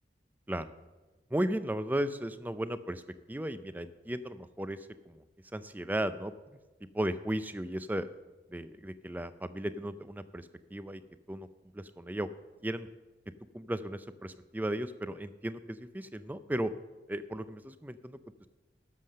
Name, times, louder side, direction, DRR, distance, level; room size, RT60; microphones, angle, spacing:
voice 1, 1.3-3.0 3.3-5.2 5.5-6.3 6.9-8.1 8.5-11.0 11.3-11.5 11.7-12.3 12.6-12.9 13.5-16.7 17.1-18.2, right 1 dB, 10° right, 12 dB, 0.4 m, -35 dB
12.0 x 7.5 x 6.4 m, 1.2 s
head